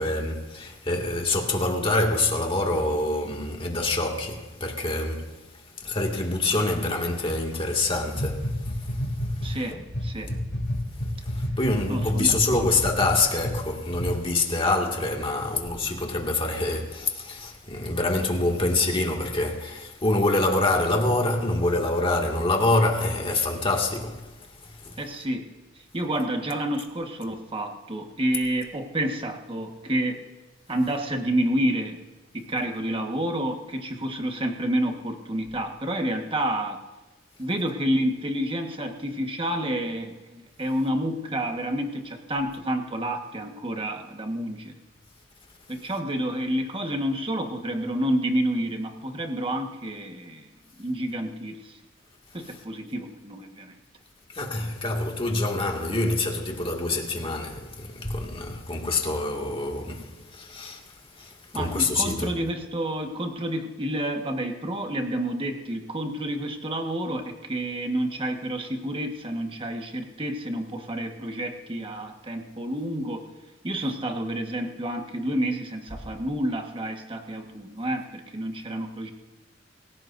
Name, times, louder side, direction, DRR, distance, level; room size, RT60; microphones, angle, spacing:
voice 1, 0.0-5.3 5.8-8.7 9.7-9.8 11.3-24.2 24.8-25.0 54.3-60.8 61.2-62.3, left 2 dB, 30° left, 2.1 m, -26 dB
sound 1, 8.1-9.5 9.9-13.6 13.9-14.1, equal, 60° left, 2.8 m, -29 dB
voice 2, 9.4-10.3 11.9-12.7 25.0-25.5 25.9-30.2 30.7-32.0 32.3-36.8 37.4-44.8 45.7-50.5 50.8-51.8 52.3-53.7 61.5-73.2 73.6-79.1, right 1 dB, 30° right, 1.4 m, -29 dB
26.0 x 16.5 x 2.6 m
head